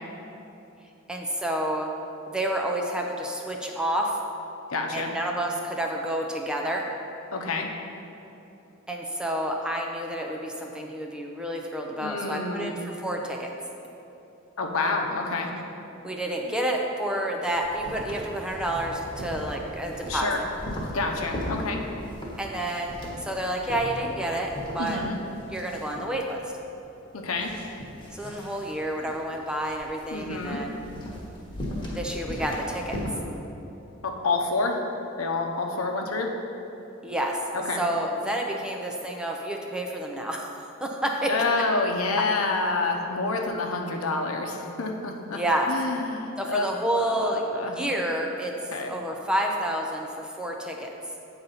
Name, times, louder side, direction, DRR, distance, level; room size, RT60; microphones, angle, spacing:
voice 1, 1.1-1.9 2.3-4.2 4.9-6.9 8.9-13.5 16.0-20.4 22.4-25.0 25.5-26.4 28.1-30.8 31.9-33.0 37.0-37.4 37.8-40.5 40.8-41.3 45.3-45.7 46.4-48.5 48.9-50.9, right 1 dB, 5° right, 0 dB, 0.6 m, -29 dB
voice 2, 4.7-5.1 7.3-7.7 12.0-12.7 14.6-15.5 20.1-20.4 20.9-21.8 24.8-25.2 27.1-27.5 30.1-30.6 34.0-34.8 35.2-36.3 37.5-37.8 41.2-45.4 45.7-46.6 46.9-47.8 48.7-48.9, left 3 dB, 85° left, 2 dB, 0.8 m, -28 dB
sound 1, 17.5-33.1, left 1 dB, 25° left, 1.3 m, -38 dB
8.3 x 3.9 x 5.6 m, 2.9 s
head